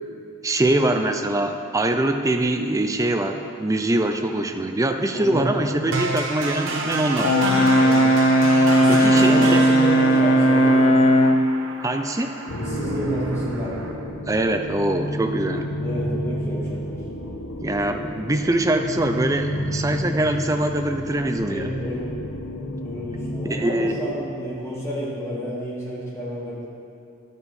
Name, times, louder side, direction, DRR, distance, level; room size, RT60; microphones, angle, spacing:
voice 1, 0.4-7.3 8.9-9.6 11.8-12.3 14.3-15.7 17.6-21.7 23.4-23.9, right 1 dB, 15° right, 6 dB, 0.4 m, -23 dB
voice 2, 5.1-5.5 7.3-8.1 8.7-11.2 12.6-13.8 15.8-17.0 21.4-22.1 22.8-26.7, equal, 15° left, -7 dB, 1.8 m, -30 dB
sound 1, 5.9-13.9, right 2 dB, 60° right, 0.9 m, -29 dB
Brass instrument, 7.2-11.5, equal, 90° left, 0.5 m, -16 dB
sound 2, 12.5-24.4, equal, 75° left, 1.0 m, -31 dB
10.5 x 6.9 x 4.2 m, 2.5 s
head